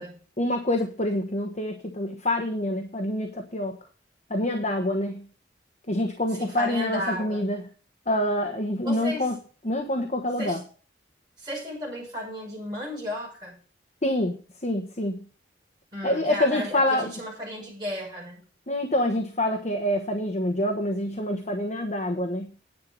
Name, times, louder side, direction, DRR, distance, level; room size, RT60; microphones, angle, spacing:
voice 1, 0.4-3.8 4.3-5.3 5.9-7.6 8.1-9.4 9.6-10.6 14.0-15.2 16.0-17.1 18.7-22.5, left 1 dB, 40° left, 4 dB, 1.2 m, -26 dB
voice 2, 6.3-7.4 8.8-9.3 10.4-10.6 11.4-13.6 15.9-18.4, left 1 dB, 20° right, -6 dB, 7.0 m, -34 dB
10.5 x 8.4 x 5.3 m, 0.39 s
head